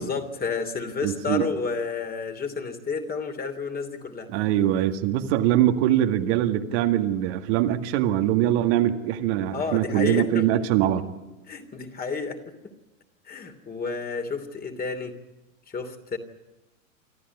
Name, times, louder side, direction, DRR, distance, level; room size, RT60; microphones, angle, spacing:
voice 1, 0.0-4.3 9.5-10.5 10.8-10.9 11.5-12.5 13.2-15.2 15.7-16.2, left 5 dB, 20° left, 6 dB, 3.0 m, -31 dB
voice 2, 1.0-1.5 4.3-11.0, right 12 dB, 55° right, 5 dB, 2.0 m, -23 dB
25.5 x 14.0 x 9.5 m, 1.1 s
hypercardioid pair, 95°, 40 cm